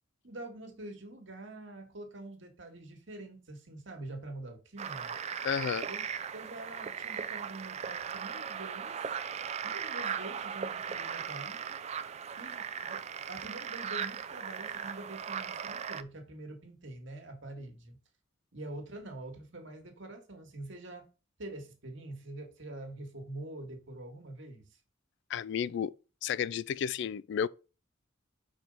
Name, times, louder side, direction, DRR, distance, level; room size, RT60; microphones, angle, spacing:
voice 1, 0.2-5.1 5.9-6.0 6.3-9.0 9.6-11.8 12.4-13.0 13.3-18.0 18.5-21.0 21.4-24.7, right 2 dB, 70° right, 1.8 m, -45 dB
sound 1, 4.8-16.0, right 7 dB, 35° right, 0.4 m, -38 dB
voice 2, 5.4-5.9 25.3-25.9 26.2-27.5, left 8 dB, 60° left, 0.3 m, -32 dB
4.9 x 4.5 x 5.3 m
head